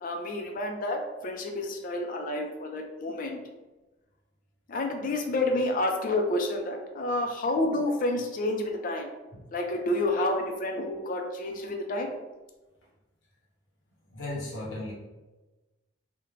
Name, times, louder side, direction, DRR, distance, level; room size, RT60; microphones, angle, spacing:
voice 1, 0.0-3.4 4.7-9.1 9.5-12.1, left 2 dB, 45° left, 3 dB, 0.4 m, -29 dB
voice 2, 14.1-14.9, left 1 dB, 80° left, -5 dB, 0.8 m, -35 dB
2.5 x 2.1 x 3.1 m, 1.1 s
head